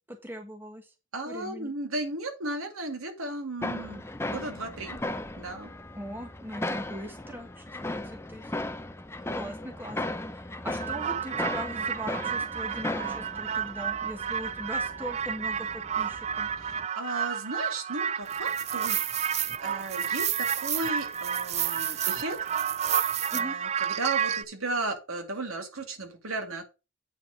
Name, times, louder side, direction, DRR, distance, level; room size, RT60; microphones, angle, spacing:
voice 1, 0.1-0.8 1.2-1.7 5.9-8.0 8.3-8.5 9.3-16.5 23.3-23.6, equal, 10° right, 4 dB, 1.5 m, -40 dB
voice 2, 1.1-5.0 5.4-5.7 16.5-22.4 23.3-26.6, right 2 dB, 90° right, 4 dB, 2.5 m, -35 dB
sound 1, 3.6-16.9, left 1 dB, 10° left, 0.6 m, -37 dB
sound 2, 10.8-24.4, right 8 dB, 30° right, 0.4 m, -30 dB
8.8 x 4.6 x 5.2 m, 0.28 s
head